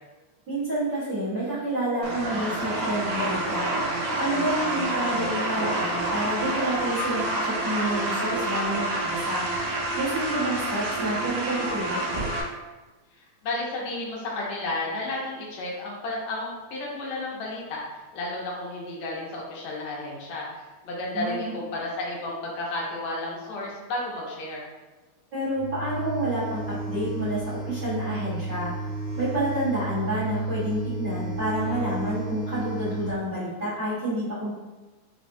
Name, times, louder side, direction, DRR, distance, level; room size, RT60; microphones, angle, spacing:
voice 1, 0.5-3.7 4.2-9.5 9.9-12.0 21.1-21.6 25.3-28.7 29.1-34.5, right 1 dB, 45° right, -13 dB, 1.3 m, -29 dB
sound 1, 2.0-12.4, right 1 dB, 80° right, 1.9 m, -28 dB
voice 2, 13.4-24.6, left 2 dB, 80° left, -3 dB, 2.0 m, -32 dB
sound 2, 25.5-33.2, right 2 dB, 60° left, 0.9 m, -32 dB
4.9 x 2.1 x 2.6 m, 1.2 s
omnidirectional pair, 3.3 m